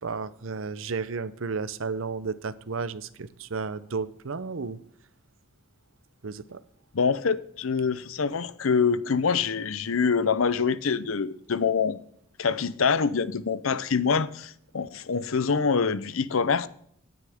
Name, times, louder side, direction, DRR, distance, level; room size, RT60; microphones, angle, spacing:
voice 1, 0.0-4.8 6.2-6.6, right 4 dB, 75° right, 0.7 m, -33 dB
voice 2, 6.9-12.0 12.4-16.7, left 5 dB, 80° left, 0.7 m, -25 dB
17.0 x 9.7 x 3.6 m
head